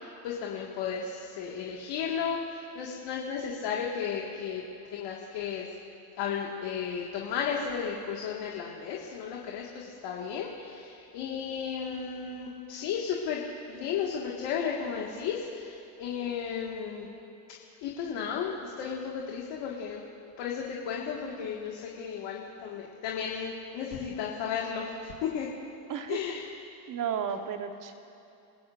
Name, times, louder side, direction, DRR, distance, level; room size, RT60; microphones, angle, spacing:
voice 1, 0.0-2.4 2.8-4.6 4.9-5.7 6.2-13.4 13.7-17.1 17.8-20.0 20.4-25.5 26.1-26.5, left 7 dB, 60° left, -2 dB, 2.0 m, -34 dB
voice 2, 26.9-27.9, right 7 dB, 40° right, 6 dB, 1.4 m, -33 dB
27.5 x 15.5 x 2.6 m, 2.8 s
supercardioid pair, 100°, 50 cm